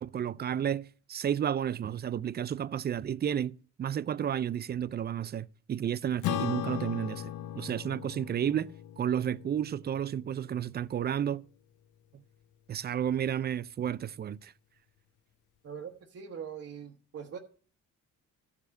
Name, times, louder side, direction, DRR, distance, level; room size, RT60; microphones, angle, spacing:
voice 1, 0.0-8.7 9.0-11.4 12.7-14.5, right 9 dB, 35° right, 0.4 m, -32 dB
Acoustic guitar / Strum, 6.2-11.0, left 12 dB, 75° left, 0.7 m, -38 dB
voice 2, 15.6-17.4, right 7 dB, 50° right, 1.1 m, -42 dB
13.5 x 4.9 x 6.3 m
cardioid pair, 90°, 30 cm